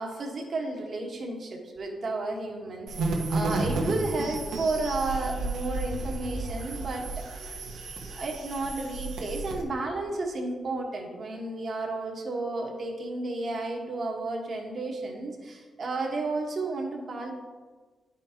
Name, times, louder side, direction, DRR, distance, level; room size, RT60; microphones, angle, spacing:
voice 1, 0.0-2.9 3.3-7.2 8.1-17.3, right 2 dB, 55° right, 0 dB, 1.4 m, -32 dB
sound 1, 2.9-9.6, right 3 dB, 80° right, 1.1 m, -32 dB
10.0 x 5.2 x 2.9 m, 1.4 s
supercardioid pair, 50°, 0 cm